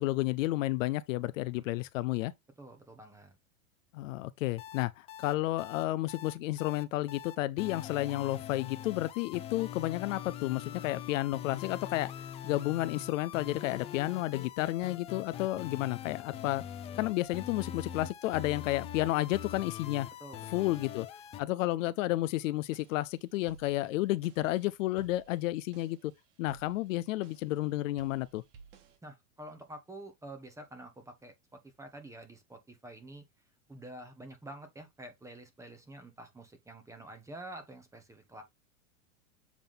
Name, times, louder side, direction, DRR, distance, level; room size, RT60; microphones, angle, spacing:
voice 1, 0.0-2.3 3.9-12.1 12.4-16.6 16.9-20.1 20.5-21.1 21.4-26.1 26.4-28.4, left 17 dB, 65° left, 0.6 m, -31 dB
voice 2, 2.6-3.4 17.7-17.8 20.2-20.7 29.0-33.2 33.7-38.4, right 1 dB, 5° right, 1.3 m, -48 dB
sound 1, 4.6-21.4, left 10 dB, 15° left, 0.3 m, -43 dB
sound 2, 12.1-12.3 12.7-13.0 13.4-13.6 14.1-14.3 14.8-15.0 15.5-15.7 16.2-16.4 16.9-17.1 17.6-17.8 18.3-18.5 18.9-19.2 19.6-19.8 20.3-20.5 21.0-21.2 21.7-21.9 22.4-22.6, left 9 dB, 85° left, 1.4 m, -64 dB
sound 3, 22.6-29.0, right 5 dB, 55° right, 2.0 m, -57 dB
7.2 x 3.7 x 3.6 m
supercardioid pair, 130°, 42 cm